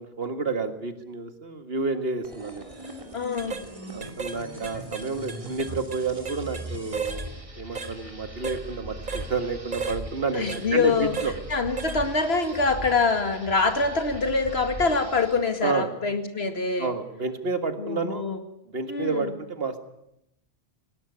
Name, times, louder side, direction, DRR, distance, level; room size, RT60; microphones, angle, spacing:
voice 1, 0.0-2.7 3.9-7.3 7.6-11.3 15.6-15.9 16.8-18.3 18.7-19.8, right 4 dB, 70° right, 9 dB, 2.0 m, -30 dB
sound 1, 2.2-15.5, right 1 dB, 30° right, 3.1 m, -40 dB
sound 2, 2.7-2.9 3.4-3.7 4.0-4.4 4.6-6.7 6.9-7.3 7.7-7.9 8.4-8.6 9.1-9.3 9.7-10.0 10.5-10.6 11.1-11.3 11.8-12.0 12.4-12.6, right 5 dB, 50° right, 1.5 m, -34 dB
voice 2, 3.1-3.6 10.3-11.1 11.5-16.9 17.8-18.4 18.9-19.3, left 4 dB, 80° left, 8 dB, 2.3 m, -25 dB
18.5 x 18.0 x 9.5 m, 0.83 s
omnidirectional pair, 1.0 m